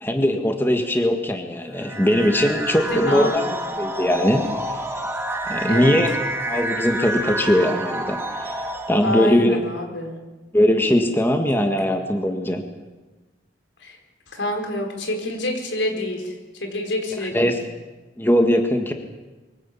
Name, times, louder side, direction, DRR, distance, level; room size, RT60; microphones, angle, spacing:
voice 1, 0.0-3.4 3.8-4.8 5.5-6.1 6.5-8.5 8.9-9.6 10.5-12.6 17.3-17.6 18.2-18.9, equal, 10° left, 4 dB, 1.8 m, -20 dB
sound 1, 1.8-9.4, right 1 dB, 15° right, 1.8 m, -28 dB
voice 2, 2.9-3.6 5.7-6.0 9.0-10.2 13.8-14.0 14.3-17.5, left 1 dB, 90° left, 3 dB, 4.8 m, -27 dB
24.0 x 16.5 x 8.5 m, 1.2 s
head